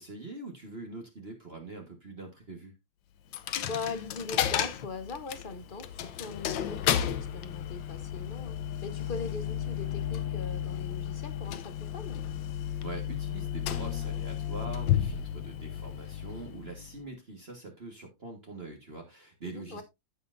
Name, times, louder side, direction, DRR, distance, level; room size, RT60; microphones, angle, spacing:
voice 1, 0.0-2.7 12.8-19.8, right 3 dB, 35° right, 1.6 m, -43 dB
Coin (dropping), 3.3-17.1, left 10 dB, 75° left, 1.4 m, -33 dB
voice 2, 3.6-12.2 19.4-19.8, left 4 dB, 40° left, 0.8 m, -40 dB
14.5 x 5.8 x 2.6 m
omnidirectional pair, 2.1 m